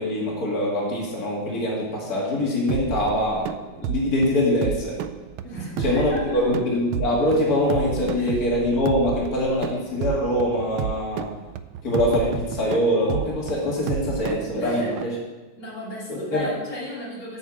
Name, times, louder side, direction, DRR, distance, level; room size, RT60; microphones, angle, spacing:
voice 1, 0.0-5.0 5.8-11.3 11.8-15.2 16.1-16.5, left 1 dB, 45° left, -4 dB, 2.9 m, -23 dB
sound 1, 2.7-15.0, right 9 dB, 80° right, 1.4 m, -32 dB
voice 2, 5.4-6.6 8.1-8.4 14.5-14.9 15.6-17.4, left 1 dB, 80° left, -6 dB, 3.6 m, -35 dB
8.3 x 7.1 x 7.5 m, 1.2 s
omnidirectional pair, 2.3 m